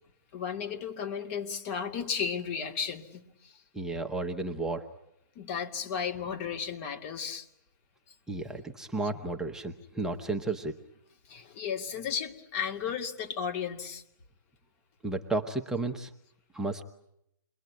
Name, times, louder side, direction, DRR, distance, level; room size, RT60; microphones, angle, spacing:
voice 1, 0.3-3.6 5.3-7.5 11.2-14.0, left 7 dB, 40° left, 5 dB, 2.5 m, -34 dB
voice 2, 3.7-4.8 8.3-10.8 15.0-16.1 16.5-16.8, right 2 dB, 5° right, 2 dB, 1.1 m, -33 dB
28.0 x 22.0 x 9.6 m, 0.80 s
hypercardioid pair, 135°, 11 cm